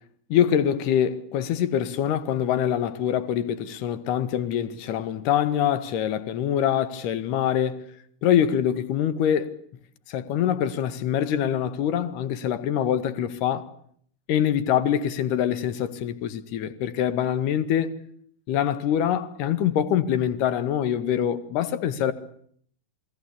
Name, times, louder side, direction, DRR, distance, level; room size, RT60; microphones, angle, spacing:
voice 1, 0.3-7.8 8.2-9.5 10.1-13.7 14.3-17.9 18.5-22.1, left 9 dB, 45° left, 1.8 m, -24 dB
28.0 x 19.5 x 8.5 m
figure-of-eight pair, 90°, 0 cm